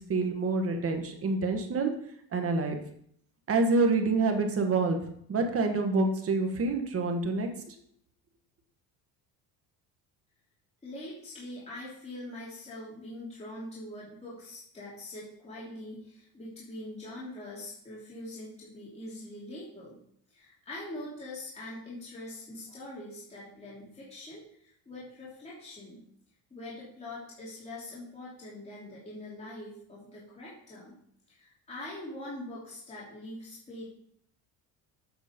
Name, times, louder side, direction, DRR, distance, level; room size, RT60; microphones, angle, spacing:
voice 1, 0.1-1.9 2.3-2.8 3.5-5.0 5.3-7.5, right 3 dB, 35° right, 5 dB, 1.5 m, -27 dB
voice 2, 10.8-20.0 20.3-26.0 26.5-31.0 31.3-33.8, left 1 dB, 15° left, -7 dB, 3.0 m, -43 dB
8.4 x 6.1 x 5.2 m, 0.67 s
cardioid pair, 130°, 40 cm